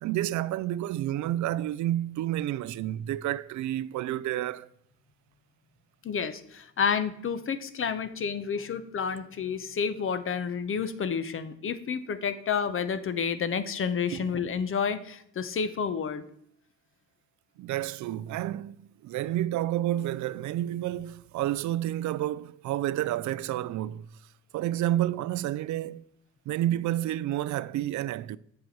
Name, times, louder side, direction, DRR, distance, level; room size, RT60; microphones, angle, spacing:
voice 1, 0.0-4.7 17.6-24.1 24.5-26.0 26.5-28.4, right 13 dB, 70° right, 0.5 m, -30 dB
voice 2, 6.0-16.2, left 6 dB, 45° left, 0.8 m, -30 dB
7.8 x 6.7 x 4.2 m
cardioid pair, 90°, 30 cm